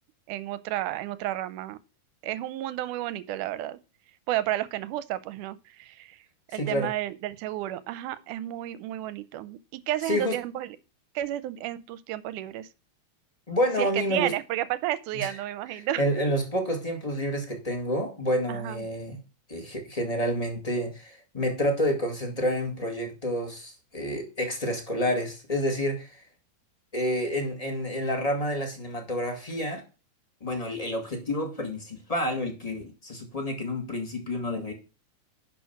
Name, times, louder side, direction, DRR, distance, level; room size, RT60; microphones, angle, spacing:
voice 1, 0.3-1.8 2.2-3.8 4.3-6.2 6.5-10.8 11.2-12.7 13.8-16.2 18.5-18.8, right 13 dB, 80° right, 2.0 m, -32 dB
voice 2, 6.5-6.9 10.0-10.4 13.5-14.3 15.1-15.4 15.7-19.2 19.5-26.2 26.9-29.8 30.4-34.7, equal, 25° left, 0.8 m, -29 dB
11.0 x 4.6 x 5.8 m
omnidirectional pair, 3.9 m